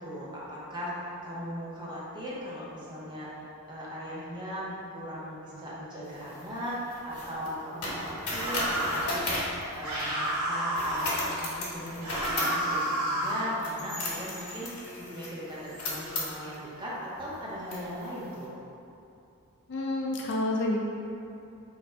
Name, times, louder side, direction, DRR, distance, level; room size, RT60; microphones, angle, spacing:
voice 1, 0.0-3.3 3.7-9.3 9.7-14.7 15.0-18.5, equal, 20° right, -7 dB, 0.7 m, -38 dB
sound 1, 6.1-10.4 10.7-16.6 17.2-17.3 17.7-18.3, left 1 dB, 75° left, 1.0 m, -36 dB
sound 2, 8.3-9.1 9.8-11.1 12.0-13.5, right 1 dB, 85° right, 1.1 m, -30 dB
voice 2, 19.7-20.8, left 1 dB, 50° left, -2 dB, 0.4 m, -29 dB
3.1 x 2.5 x 4.3 m, 2.7 s
head